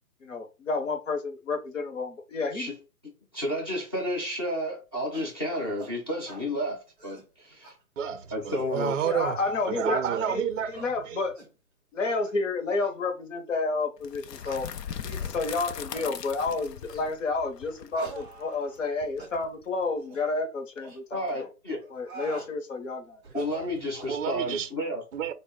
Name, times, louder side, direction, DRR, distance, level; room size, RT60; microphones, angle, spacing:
voice 1, 0.2-2.7 9.0-10.0 10.3-10.4 10.7-11.4 11.9-14.7 15.0-21.2 21.9-23.2, left 3 dB, 50° left, 0.9 m, -30 dB
voice 2, 3.3-7.7 8.3-9.0 21.1-21.8 23.3-25.0, equal, 15° left, 0.7 m, -31 dB
sound 1, 5.1-5.3 5.8-5.9 6.3-6.5 6.9-7.3 7.6-7.7 8.2-8.7 9.4-9.7 10.1-10.4 10.7-10.9 11.3-11.5 12.1-12.3 12.8-12.9 13.5-13.6 14.4-14.6 15.1-15.4 15.9-16.1 16.9-17.1 17.9-18.9 19.2-19.3 20.0-20.2 20.8-21.0 21.8-22.5 23.2-24.2, right 3 dB, 15° right, 0.8 m, -45 dB
voice 3, 8.0-9.4 9.7-10.7 11.0-11.2 24.1-24.7 25.1-25.3, right 8 dB, 55° right, 0.5 m, -29 dB
sound 2, 14.0-19.8, left 8 dB, 85° left, 0.6 m, -39 dB
3.8 x 2.2 x 3.5 m
hypercardioid pair, 160°, 48 cm